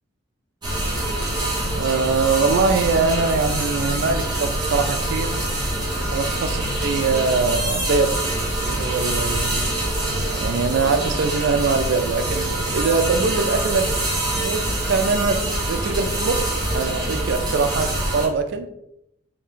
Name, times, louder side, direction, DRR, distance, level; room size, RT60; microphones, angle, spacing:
sound 1, 0.6-18.3, right 1 dB, 20° right, 0.8 m, -25 dB
voice 1, 1.7-5.3 6.1-8.1 8.6-9.8 10.4-13.9 14.4-16.4 16.7-18.7, right 4 dB, 55° right, 8 dB, 0.3 m, -23 dB
2.5 x 2.2 x 3.6 m, 0.80 s
head